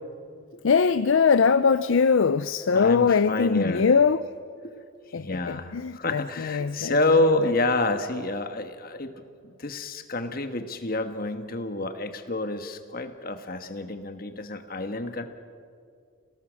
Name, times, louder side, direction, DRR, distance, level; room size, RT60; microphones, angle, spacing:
voice 1, 0.6-4.3 5.1-7.5, left 5 dB, 70° left, 13 dB, 0.5 m, -22 dB
voice 2, 2.7-3.8 4.6-4.8 5.1-9.1 9.4-15.2, left 2 dB, 45° left, 8 dB, 1.4 m, -28 dB
29.0 x 18.5 x 6.4 m, 2.2 s
head